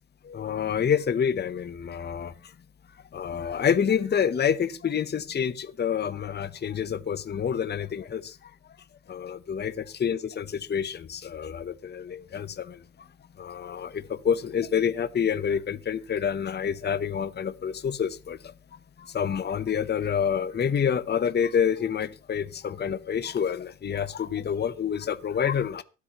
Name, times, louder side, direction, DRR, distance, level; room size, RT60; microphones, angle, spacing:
voice 1, 0.2-2.3 3.1-8.3 9.1-12.8 13.4-18.4 19.0-25.8, left 7 dB, 35° left, 14 dB, 0.8 m, -28 dB
23.5 x 8.5 x 3.0 m, 0.32 s
cardioid pair, 90°, 30 cm